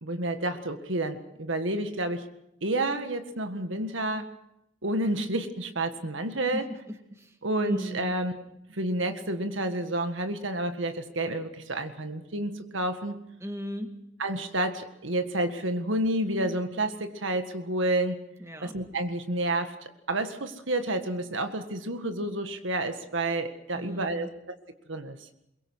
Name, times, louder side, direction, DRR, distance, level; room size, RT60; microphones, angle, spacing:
voice 1, 0.0-2.3 2.6-4.3 4.8-6.7 7.4-8.3 8.7-13.2 14.2-18.2 18.6-19.8 20.1-24.5 24.9-25.2, right 1 dB, 80° right, 7 dB, 1.8 m, -30 dB
voice 2, 6.5-8.1 13.4-13.9 18.4-18.7 23.7-24.3, equal, 15° right, 5 dB, 1.9 m, -38 dB
22.5 x 22.5 x 6.3 m, 0.82 s
head